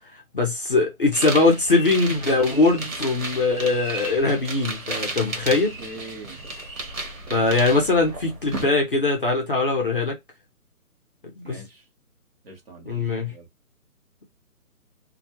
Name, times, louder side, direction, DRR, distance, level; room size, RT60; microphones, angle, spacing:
voice 1, 0.3-5.8 7.3-10.2 11.4-11.6 12.8-13.3, left 3 dB, 35° left, 0.6 m, -21 dB
sound 1, 1.1-8.6, right 2 dB, 60° right, 1.1 m, -34 dB
voice 2, 5.4-6.4 11.4-11.8 12.4-13.5, right 2 dB, 40° right, 0.9 m, -43 dB
2.2 x 2.1 x 2.7 m
hypercardioid pair, 165°, 45 cm